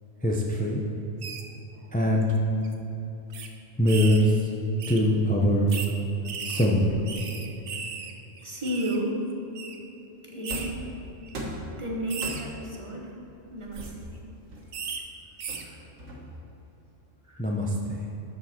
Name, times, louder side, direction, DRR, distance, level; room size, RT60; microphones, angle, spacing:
voice 1, 0.2-0.8 1.9-2.4 3.8-4.5 4.9-5.7 6.4-6.9 17.4-18.0, equal, 10° left, -2 dB, 0.4 m, -23 dB
sound 1, 1.2-1.4 2.2-2.4 2.6-2.7 3.3-3.5 3.9-4.3 4.8-5.0 5.7-5.9 6.2-8.1 8.4-9.0 9.5-9.7 10.4-10.7 11.2-11.4 12.1-12.4 13.6-13.9 14.7-15.0 15.4-15.6, right 6 dB, 55° right, 0.8 m, -36 dB
voice 2, 8.4-9.2 10.2-10.7 11.8-13.1 13.5-14.2 15.6-15.8 17.2-17.4, equal, 25° right, -2 dB, 1.0 m, -33 dB
sound 2, 10.5-10.9 11.3-11.7 12.2-12.7 13.8-14.9 15.5-16.5, right 1 dB, 70° right, 1.5 m, -38 dB
12.5 x 4.8 x 4.3 m, 3.0 s
omnidirectional pair, 1.3 m